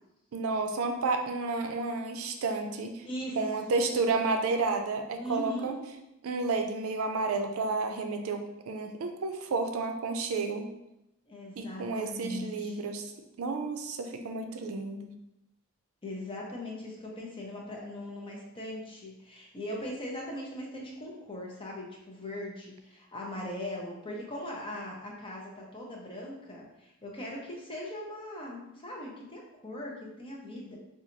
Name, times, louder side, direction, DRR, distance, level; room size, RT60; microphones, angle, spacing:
voice 1, 0.3-3.0 3.4-5.8 6.2-10.7 11.6-13.0 13.4-15.1, right 3 dB, 80° right, 5 dB, 0.4 m, -31 dB
voice 2, 3.0-3.4 5.2-5.7 11.3-12.8 16.0-30.8, left 1 dB, 25° left, -2 dB, 0.7 m, -40 dB
2.9 x 2.3 x 3.8 m, 0.88 s
head